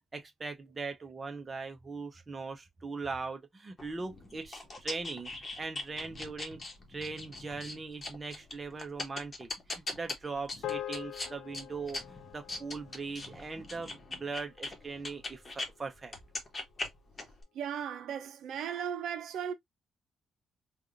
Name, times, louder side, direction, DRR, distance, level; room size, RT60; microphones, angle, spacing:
voice 1, 0.1-5.3 5.6-6.6 6.9-16.1, right 4 dB, 25° right, 0.7 m, -40 dB
sound 1, 3.8-15.7 16.0-17.4, left 2 dB, 35° left, 1.0 m, -41 dB
sound 2, 10.6-15.1, left 12 dB, 80° left, 0.4 m, -44 dB
voice 2, 17.5-19.5, right 8 dB, 75° right, 0.6 m, -36 dB
3.4 x 2.4 x 2.5 m
cardioid pair, 90°, 0 cm